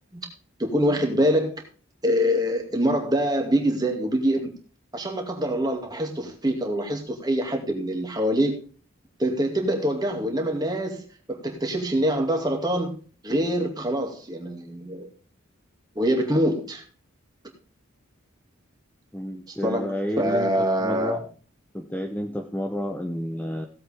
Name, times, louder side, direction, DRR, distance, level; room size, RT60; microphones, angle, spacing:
voice 1, 0.6-1.6 2.0-4.5 4.9-8.6 9.2-11.0 11.3-13.0 13.2-15.1 15.9-16.8 19.5-21.2, equal, 20° right, 2 dB, 2.5 m, -25 dB
voice 2, 19.1-21.2 21.7-23.7, left 1 dB, 10° left, 3 dB, 0.9 m, -30 dB
17.0 x 8.0 x 3.6 m, 0.39 s
head